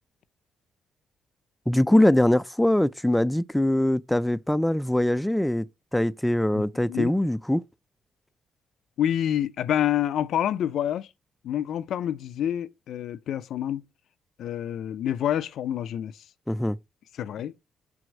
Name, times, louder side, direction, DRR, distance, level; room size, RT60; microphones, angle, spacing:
voice 1, 1.7-5.7 5.9-7.6 16.5-16.8, left 1 dB, 5° left, 0.4 m, -22 dB
voice 2, 6.5-7.1 9.0-11.1 11.4-13.8 14.4-16.1 17.2-17.5, left 10 dB, 70° left, 0.5 m, -27 dB
6.9 x 4.7 x 6.3 m
cardioid pair, 90°, 0 cm